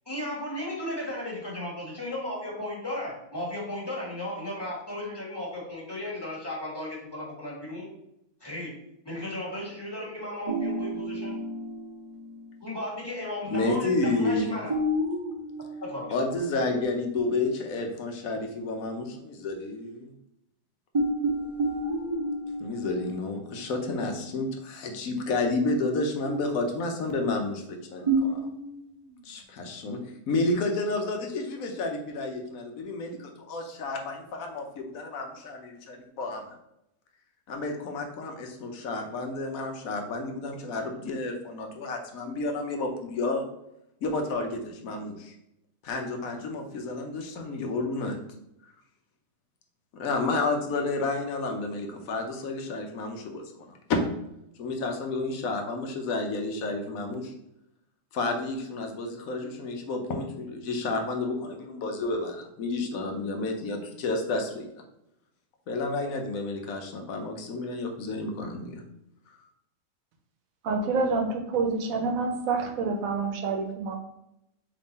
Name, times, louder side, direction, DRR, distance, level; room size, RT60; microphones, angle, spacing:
voice 1, 0.0-7.9 8.4-8.7 9.0-11.4 12.6-14.7 15.8-16.1, left 1 dB, 20° left, -5 dB, 1.4 m, -35 dB
sound 1, 10.5-12.5 14.7-16.8 17.2-17.4 20.9-24.1 28.1-28.8, right 1 dB, 30° right, 0.7 m, -30 dB
voice 2, 13.5-14.5 16.1-20.1 22.6-28.4 29.2-30.0 30.3-36.4 37.5-43.5 44.0-45.3 45.8-48.2 49.9-53.8 54.6-57.3 58.1-64.7 65.7-68.8, left 2 dB, 80° left, 3 dB, 1.2 m, -31 dB
voice 3, 70.6-74.0, right 4 dB, 80° right, 4 dB, 1.1 m, -27 dB
3.7 x 3.1 x 4.0 m, 0.81 s
omnidirectional pair, 1.4 m